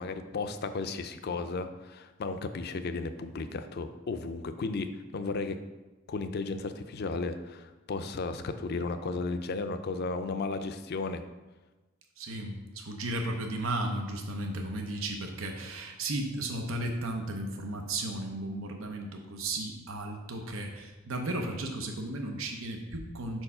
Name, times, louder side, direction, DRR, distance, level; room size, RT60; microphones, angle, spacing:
voice 1, 0.0-5.6 6.1-11.2, left 3 dB, 55° left, 9 dB, 0.4 m, -34 dB
voice 2, 12.2-23.4, right 1 dB, 90° right, 3 dB, 0.8 m, -35 dB
4.8 x 4.5 x 5.5 m, 1.1 s
head